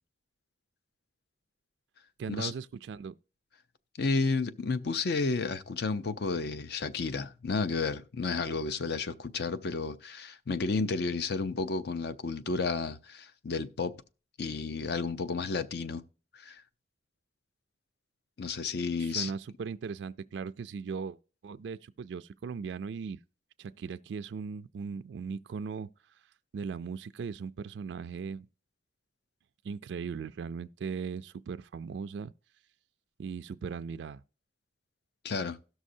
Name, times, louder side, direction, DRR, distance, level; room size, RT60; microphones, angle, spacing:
voice 1, 2.2-3.1 19.0-21.2 21.4-23.2 23.6-26.2 26.5-28.5 29.6-32.3 33.2-34.2, right 5 dB, 75° right, 0.3 m, -38 dB
voice 2, 4.0-14.0 14.4-16.0 16.3-16.6 18.4-19.3 35.2-35.6, left 4 dB, 60° left, 0.6 m, -32 dB
17.5 x 6.3 x 2.7 m
head